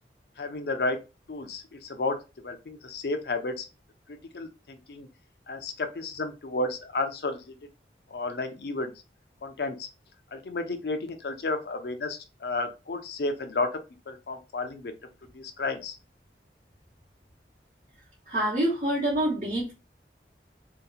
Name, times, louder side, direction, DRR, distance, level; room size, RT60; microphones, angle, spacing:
voice 1, 0.4-1.0 1.3-2.2 2.4-3.7 4.3-5.1 5.5-7.5 8.1-8.9 9.4-9.9 10.3-13.7 14.1-14.9 15.3-16.0, left 3 dB, 65° left, 7 dB, 0.5 m, -32 dB
voice 2, 18.3-19.7, right 1 dB, 40° right, -8 dB, 0.9 m, -26 dB
2.8 x 2.2 x 2.3 m, 0.28 s
head